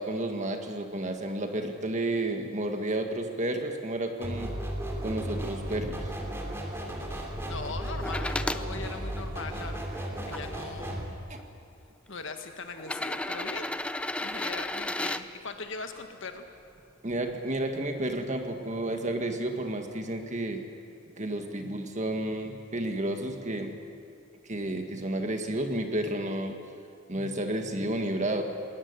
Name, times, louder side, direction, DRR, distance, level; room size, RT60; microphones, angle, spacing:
voice 1, 0.0-4.5 5.0-6.1 11.3-11.4 17.0-20.6 21.2-23.7 24.5-26.6 27.1-28.4, right 1 dB, 35° right, 5 dB, 1.8 m, -31 dB
sound 1, 4.2-11.1, right 1 dB, 10° right, 2.8 m, -35 dB
voice 2, 7.5-11.0 12.1-13.7 14.2-16.5, left 4 dB, 60° left, 6 dB, 1.7 m, -40 dB
sound 2, 8.0-8.6 9.4-10.4 11.4-11.5 12.8-15.2 17.1-17.2, left 1 dB, 5° left, 0.5 m, -33 dB
20.5 x 18.5 x 9.7 m, 2.4 s
head